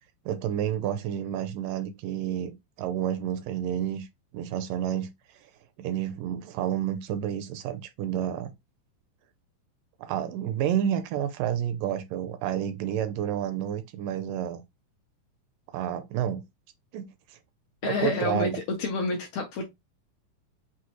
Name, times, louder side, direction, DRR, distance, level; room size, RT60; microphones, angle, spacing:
voice 1, 0.3-2.5 2.8-4.1 4.3-5.5 5.8-8.5 10.0-14.6 15.7-16.4 16.9-17.4 17.8-18.6, right 10 dB, 80° right, 2.1 m, -30 dB
voice 2, 17.8-19.6, left 3 dB, 75° left, 1.8 m, -29 dB
6.2 x 2.3 x 3.0 m
omnidirectional pair, 4.0 m